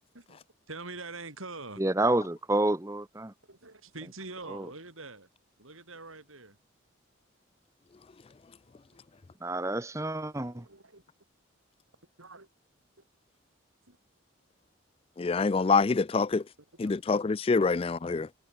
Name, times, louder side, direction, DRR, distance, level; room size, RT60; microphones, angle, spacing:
voice 1, 0.7-1.8 3.5-5.3 5.6-6.6 10.2-11.0 12.2-12.5 13.9-14.0 16.8-17.0 17.6-17.7, right 3 dB, 85° right, 8.0 m, -44 dB
voice 2, 1.8-3.3 4.5-4.7 9.4-10.6, right 1 dB, 15° right, 0.9 m, -29 dB
voice 3, 15.2-16.4 16.8-18.3, left 4 dB, 30° left, 0.3 m, -26 dB
head